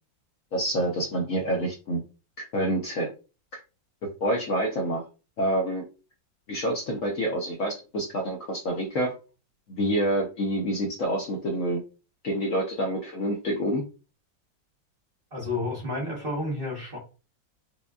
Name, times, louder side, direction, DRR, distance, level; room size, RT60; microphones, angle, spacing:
voice 1, 0.5-2.0 2.5-3.1 4.2-5.0 5.4-5.8 6.5-9.1 9.7-11.8 12.2-13.8, right 1 dB, 70° left, 0 dB, 0.8 m, -27 dB
voice 2, 15.3-17.0, left 2 dB, 40° right, -2 dB, 0.9 m, -31 dB
5.1 x 2.3 x 2.3 m, 0.33 s
omnidirectional pair, 2.1 m